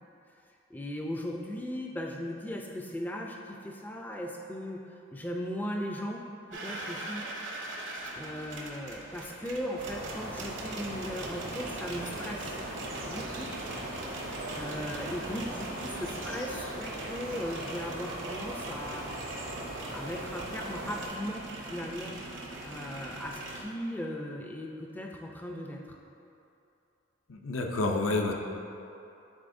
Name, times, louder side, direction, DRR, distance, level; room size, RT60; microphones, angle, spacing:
voice 1, 0.7-6.2 6.5-7.3 8.1-12.5 13.1-13.5 14.5-19.1 19.9-22.2 22.6-26.0, equal, 10° left, 1 dB, 0.3 m, -38 dB
sound 1, 6.5-23.6, right 2 dB, 65° right, 0.8 m, -41 dB
sound 2, 9.8-21.1, right 1 dB, 85° right, 1.0 m, -40 dB
voice 2, 27.3-28.3, left 2 dB, 80° left, 2 dB, 0.5 m, -29 dB
9.8 x 4.1 x 2.6 m, 2.8 s
head